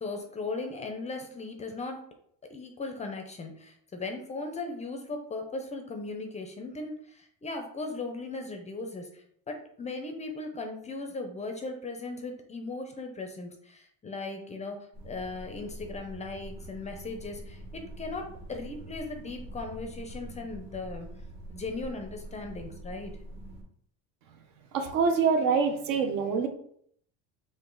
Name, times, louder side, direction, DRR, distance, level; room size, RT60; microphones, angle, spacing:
voice 1, 0.0-2.0 2.5-14.8 15.0-21.1 21.5-23.1, left 3 dB, 20° left, 5 dB, 0.4 m, -38 dB
sound 1, 14.9-23.6, right 1 dB, 45° right, 1.6 m, -44 dB
voice 2, 24.7-26.5, right 5 dB, 70° right, 6 dB, 0.7 m, -25 dB
3.8 x 2.5 x 3.8 m, 0.66 s
cardioid pair, 135°, 36 cm